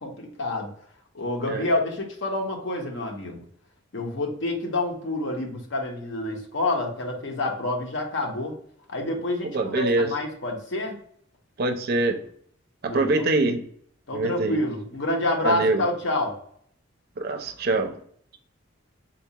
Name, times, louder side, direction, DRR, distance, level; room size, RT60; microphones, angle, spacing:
voice 1, 0.0-0.7 1.1-3.4 3.9-8.5 8.9-10.9 12.8-13.2 14.1-16.4, left 2 dB, 60° left, 2 dB, 0.8 m, -28 dB
voice 2, 9.5-10.1 11.6-12.2 12.8-13.6 14.1-14.6 15.4-15.8 17.2-17.9, right 2 dB, 45° right, 6 dB, 0.4 m, -24 dB
4.0 x 2.3 x 2.7 m, 0.63 s
head